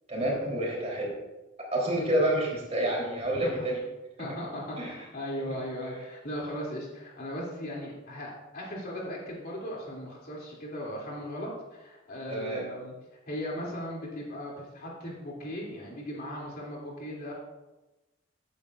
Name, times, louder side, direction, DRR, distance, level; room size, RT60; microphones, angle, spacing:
voice 1, 0.1-1.2 1.7-3.8 4.2-4.3 4.8-4.9 12.3-12.6, right 1 dB, 35° right, -3 dB, 3.4 m, -28 dB
voice 2, 4.2-12.9 13.3-17.3, equal, 50° left, -3 dB, 2.8 m, -37 dB
15.0 x 9.0 x 2.5 m, 1.1 s
head